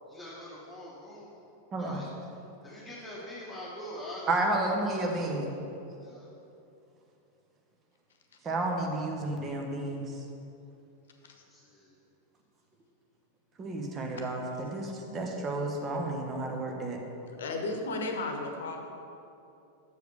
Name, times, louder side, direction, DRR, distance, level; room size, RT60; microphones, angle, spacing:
voice 1, 0.1-1.4 1.8-2.1 2.6-4.5 4.8-5.3 6.0-6.3 11.5-11.9, left 1 dB, 10° left, -7 dB, 1.3 m, -43 dB
voice 2, 1.7-2.0 4.3-5.5 8.4-10.0 13.6-17.0, right 2 dB, 25° right, 1 dB, 1.1 m, -31 dB
voice 3, 17.3-18.9, left 2 dB, 65° left, 3 dB, 0.9 m, -34 dB
6.7 x 4.9 x 6.6 m, 2.8 s
figure-of-eight pair, 90°, 0 cm